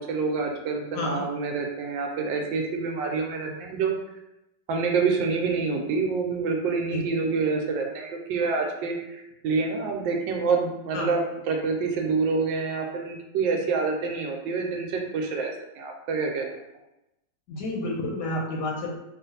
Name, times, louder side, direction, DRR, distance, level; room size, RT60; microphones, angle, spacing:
voice 1, 0.0-3.9 4.7-16.6, right 4 dB, 75° right, 2 dB, 1.3 m, -27 dB
voice 2, 17.5-18.9, left 1 dB, 70° left, 0 dB, 1.1 m, -30 dB
3.0 x 2.5 x 4.0 m, 0.90 s
omnidirectional pair, 2.1 m